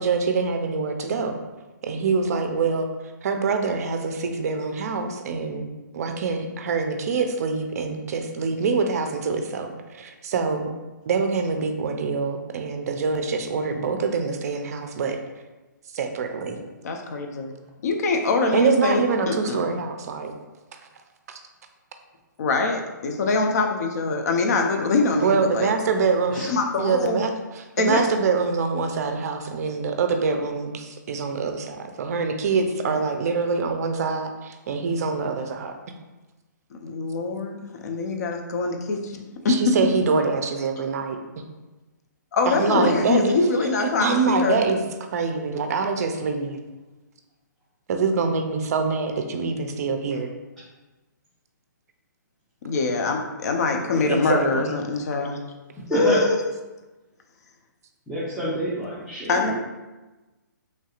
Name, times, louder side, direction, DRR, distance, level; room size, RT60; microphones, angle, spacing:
voice 1, 0.0-1.4 1.8-2.9 3.2-5.7 5.9-9.7 9.9-10.7 11.1-15.2 15.9-16.6 18.5-20.3 21.3-21.4 25.2-26.4 26.8-27.3 27.8-35.7 39.5-41.2 42.5-43.3 44.0-44.8 45.1-46.6 47.9-50.3 53.9-54.7, right 5 dB, 50° right, 6 dB, 0.4 m, -25 dB
voice 2, 16.8-17.5 17.8-19.6 22.4-25.7 26.5-27.2 27.8-28.1 32.8-33.1 36.7-39.9 42.3-44.6 52.6-55.4 55.9-56.4 59.3-59.5, left 3 dB, 55° left, 3 dB, 0.5 m, -24 dB
voice 3, 55.8-56.2 58.1-59.5, equal, 5° left, -13 dB, 0.6 m, -27 dB
3.2 x 2.7 x 2.4 m, 1.1 s
hypercardioid pair, 145°, 10 cm